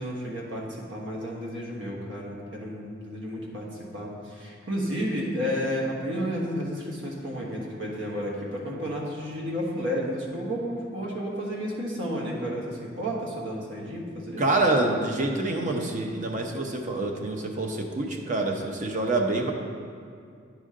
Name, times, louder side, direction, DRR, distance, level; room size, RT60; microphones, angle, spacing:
voice 1, 0.0-3.7 3.9-14.5, equal, 75° right, -3 dB, 1.3 m, -32 dB
voice 2, 14.4-19.5, right 2 dB, 40° right, 2 dB, 0.7 m, -26 dB
10.0 x 5.0 x 3.7 m, 2.3 s
head